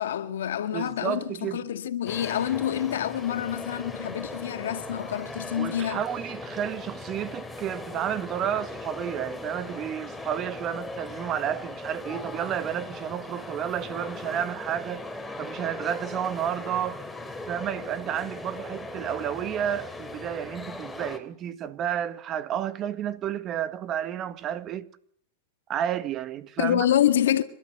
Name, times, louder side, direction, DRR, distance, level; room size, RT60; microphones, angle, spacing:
voice 1, 0.0-6.0 26.6-27.4, left 10 dB, 85° left, 1.9 m, -27 dB
voice 2, 0.7-1.6 5.6-15.1 15.4-17.0 17.5-24.9 25.7-26.9, right 10 dB, 35° right, 1.6 m, -31 dB
sound 1, 2.1-21.2, left 2 dB, 5° left, 3.1 m, -39 dB
26.5 x 13.0 x 8.2 m
hypercardioid pair, 130°, 0 cm